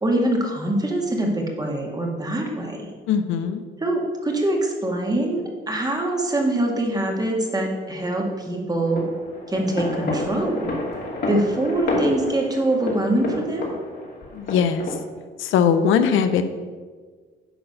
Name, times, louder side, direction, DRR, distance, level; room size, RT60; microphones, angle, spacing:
voice 1, 0.0-2.9 3.8-9.0 9.5-10.7 11.2-13.7, right 1 dB, 20° right, 0 dB, 2.0 m, -24 dB
voice 2, 3.1-3.6 14.3-14.8 15.4-16.4, left 7 dB, 85° left, 9 dB, 0.7 m, -20 dB
sound 1, 8.9-14.9, left 2 dB, 55° left, 2.4 m, -29 dB
10.0 x 4.0 x 6.6 m, 1.5 s
cardioid pair, 90°, 20 cm